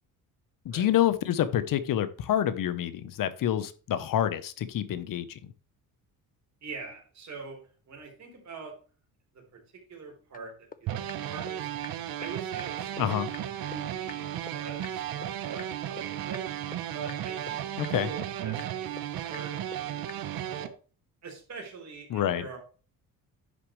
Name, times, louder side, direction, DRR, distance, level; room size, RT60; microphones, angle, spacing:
voice 1, 0.6-5.5 13.0-13.3 17.8-18.1 22.1-22.4, left 11 dB, 60° left, 13 dB, 1.0 m, -27 dB
voice 2, 6.6-8.7 9.3-9.6 9.9-11.7 12.2-15.1 15.4-16.4 16.9-20.7 21.2-22.6, right 5 dB, 45° right, 1 dB, 4.0 m, -44 dB
sound 1, 10.3-10.4 10.7-10.8 11.1-11.2 11.5-11.6 11.8-11.9 12.2-12.3 12.6-12.7 13.0-13.1 13.3-13.4 13.7-13.8 14.1-14.2 14.5-14.6 14.8-14.9 15.2-15.3 15.6-15.7 16.0-16.1 16.3-16.4 16.7-16.8 17.1-17.2 17.5-17.6 17.8-17.9 18.2-18.3 18.6-18.7 19.0-19.1 19.3-19.4 19.7-19.8 20.1-20.2, left 6 dB, 25° left, 0.6 m, -42 dB
sound 2, 10.9-20.7, right 11 dB, 70° right, 1.1 m, -34 dB
10.5 x 6.7 x 3.2 m, 0.37 s
cardioid pair, 130°, 37 cm